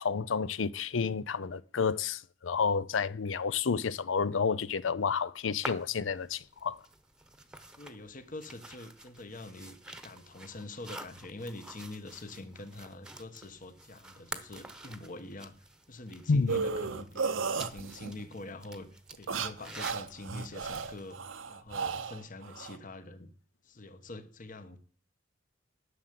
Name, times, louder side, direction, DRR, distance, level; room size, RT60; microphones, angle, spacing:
voice 1, 0.0-6.8 16.3-16.6, left 5 dB, 85° left, 0.6 m, -30 dB
sound 1, 5.6-21.2, right 1 dB, 5° right, 1.0 m, -49 dB
voice 2, 7.8-9.8 10.0-15.5 15.9-18.9 19.2-21.2 21.5-23.3 23.6-24.8, left 2 dB, 45° left, 1.2 m, -45 dB
sound 2, 16.5-18.2 19.1-22.8, right 5 dB, 85° right, 0.8 m, -34 dB
11.5 x 6.6 x 7.6 m
head